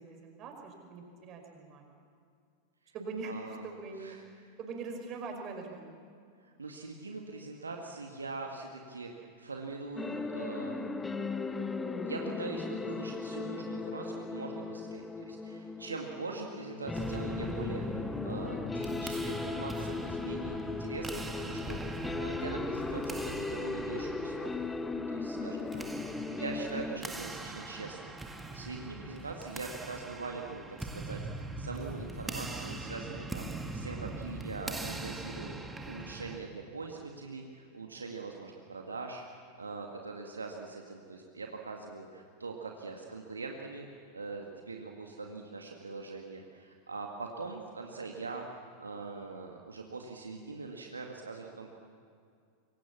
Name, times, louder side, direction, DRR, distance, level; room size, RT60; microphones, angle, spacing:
voice 1, 0.0-1.9 2.9-4.2 4.6-5.9 34.3-34.7 45.2-45.4, right 4 dB, 35° right, 3 dB, 5.6 m, -43 dB
voice 2, 3.3-3.6 4.0-4.5 6.4-10.8 11.4-24.5 25.1-43.9 44.1-51.7, right 4 dB, 75° right, 2 dB, 2.0 m, -42 dB
sound 1, 10.0-27.0, left 3 dB, 10° left, 1.2 m, -37 dB
sound 2, 16.9-36.4, right 2 dB, 10° right, 2.2 m, -42 dB
26.0 x 24.0 x 7.3 m, 2.3 s
figure-of-eight pair, 90°, 0 cm